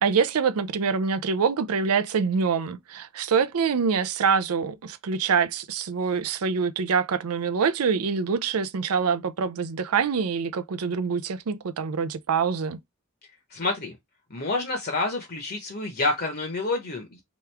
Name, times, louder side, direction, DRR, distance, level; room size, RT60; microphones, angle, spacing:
voice 1, 0.0-12.8, right 6 dB, 75° right, 0.5 m, -25 dB
voice 2, 13.5-14.0 14.3-17.2, left 2 dB, 45° left, 0.9 m, -28 dB
3.4 x 3.0 x 3.3 m
head